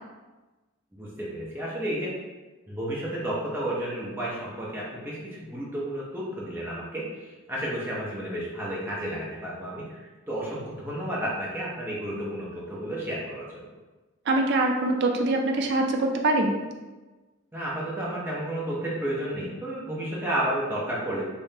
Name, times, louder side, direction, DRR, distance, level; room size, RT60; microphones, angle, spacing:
voice 1, 0.9-2.1 2.7-7.1 7.5-13.6 17.5-21.2, right 1 dB, 10° right, -6 dB, 0.6 m, -32 dB
voice 2, 14.3-16.5, right 2 dB, 50° right, 3 dB, 0.4 m, -23 dB
3.5 x 2.5 x 2.7 m, 1.2 s
head